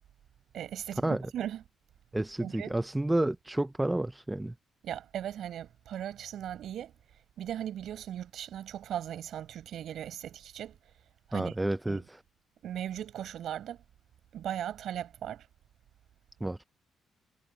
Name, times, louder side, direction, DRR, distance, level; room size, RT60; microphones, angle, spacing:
voice 1, 0.5-1.6 2.4-2.8 4.8-6.9 7.4-10.8 11.3-11.5 11.9-12.0 12.6-13.8 14.3-15.5, right 10 dB, 70° right, 5.9 m, -38 dB
voice 2, 2.1-4.5 11.3-12.2 16.4-16.6, right 1 dB, 10° right, 0.6 m, -30 dB
cardioid pair, 90°, 0 cm